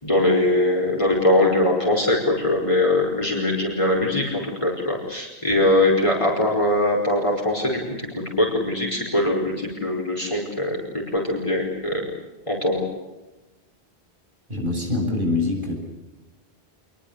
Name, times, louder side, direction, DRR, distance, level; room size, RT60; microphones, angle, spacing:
voice 1, 0.0-12.1 12.5-12.8, left 1 dB, 30° left, -1 dB, 5.1 m, -22 dB
voice 2, 14.5-15.7, left 2 dB, 50° right, 2 dB, 7.9 m, -24 dB
27.0 x 21.5 x 8.3 m, 1.1 s
omnidirectional pair, 1.1 m